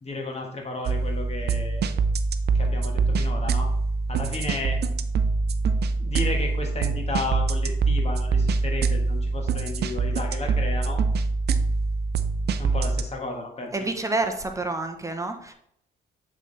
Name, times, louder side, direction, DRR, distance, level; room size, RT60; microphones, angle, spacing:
voice 1, 0.0-1.9 2.5-3.7 4.1-4.8 6.0-11.0 12.6-13.9, left 3 dB, 30° left, 1 dB, 1.5 m, -33 dB
sound 1, 0.9-13.0, right 4 dB, 55° right, 0.5 m, -24 dB
voice 2, 13.7-15.5, right 2 dB, 15° right, 5 dB, 0.8 m, -28 dB
7.4 x 3.9 x 3.3 m, 0.71 s
cardioid pair, 90°, 20 cm